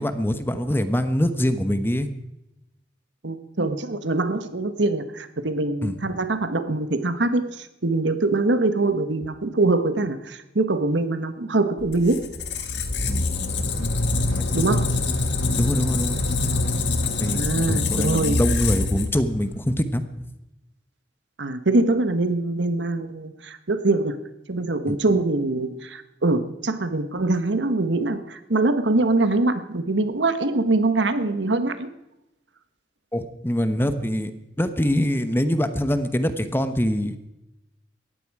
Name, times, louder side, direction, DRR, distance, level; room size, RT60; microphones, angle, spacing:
voice 1, 0.0-2.1 5.8-6.0 13.1-13.2 15.6-16.2 17.2-17.4 17.7-20.0 24.9-25.0 33.1-34.3 34.6-37.3, equal, 15° left, 10 dB, 1.0 m, -24 dB
voice 2, 3.2-12.3 14.5-14.9 17.3-18.4 21.4-24.1 24.5-31.9, right 2 dB, 85° right, 10 dB, 1.3 m, -23 dB
Squeak, 11.8-19.5, left 3 dB, 75° left, 1.8 m, -25 dB
18.5 x 14.0 x 4.8 m, 0.90 s
head